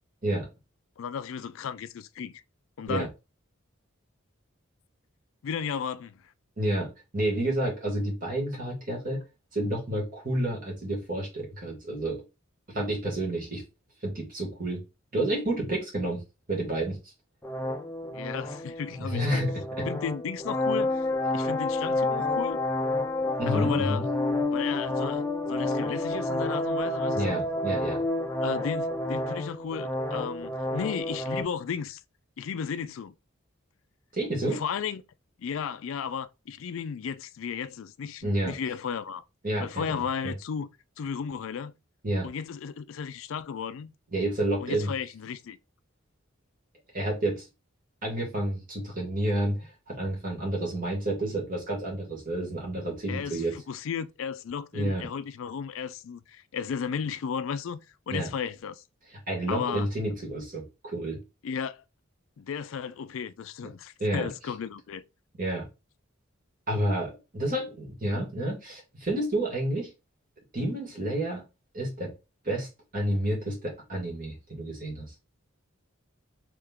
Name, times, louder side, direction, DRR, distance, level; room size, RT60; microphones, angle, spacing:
voice 1, 1.0-2.4 2.8-3.1 5.4-6.3 18.1-19.4 19.9-21.0 21.3-22.6 23.5-24.0 24.5-27.4 28.4-32.0 32.4-33.1 34.4-35.0 35.4-39.2 39.6-40.7 41.0-41.7 42.2-43.9 44.6-45.6 53.1-58.8 59.5-59.9 61.4-61.8 62.4-65.0, left 7 dB, 75° left, 0.4 m, -34 dB
voice 2, 6.6-9.2 9.5-12.2 12.7-13.6 14.0-14.8 15.1-16.2 16.5-17.0 19.0-19.9 23.4-24.1 27.1-28.0 34.1-34.6 38.2-38.6 39.4-40.3 42.0-42.3 44.1-44.9 46.9-47.5 48.0-53.5 54.7-55.1 58.1-58.3 59.3-61.2 64.0-64.3 65.4-65.7 66.7-69.9 70.5-71.4 71.7-72.1 72.4-75.1, right 1 dB, 40° right, 2.0 m, -30 dB
sound 1, 17.4-31.4, left 2 dB, 10° left, 0.5 m, -29 dB
3.4 x 3.3 x 3.6 m
head